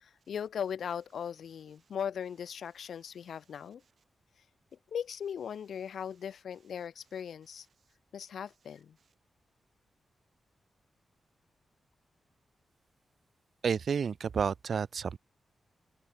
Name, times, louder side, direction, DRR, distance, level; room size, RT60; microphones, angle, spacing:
voice 1, 0.0-3.8 4.9-7.7 8.1-9.0, left 8 dB, 80° left, 1.0 m, -38 dB
voice 2, 13.6-15.2, right 6 dB, 60° right, 0.8 m, -30 dB
open air
wide cardioid pair, 100°, 0 cm